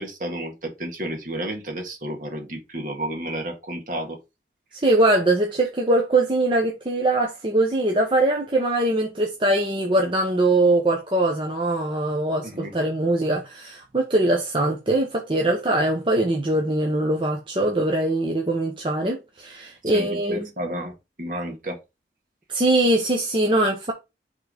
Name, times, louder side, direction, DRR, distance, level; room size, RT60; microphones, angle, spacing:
voice 1, 0.0-4.2 12.4-12.7 19.9-21.8, right 1 dB, 45° right, 1.9 m, -32 dB
voice 2, 4.7-20.5 22.5-23.9, right 2 dB, 30° right, 0.8 m, -22 dB
5.8 x 3.8 x 5.0 m
head